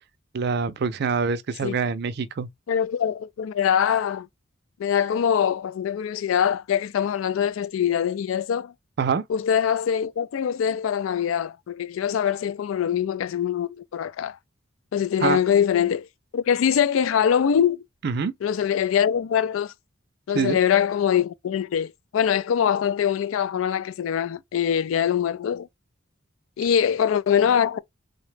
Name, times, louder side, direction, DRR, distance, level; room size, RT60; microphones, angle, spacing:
voice 1, 0.3-2.5 9.0-9.2 15.2-15.4 18.0-18.3 20.3-20.6, right 5 dB, 55° right, 0.4 m, -25 dB
voice 2, 2.7-4.3 4.8-8.7 9.3-14.4 14.9-16.1 16.3-17.8 18.4-19.7 20.3-25.7 26.6-27.8, left 8 dB, 80° left, 0.3 m, -23 dB
3.9 x 2.1 x 3.2 m
head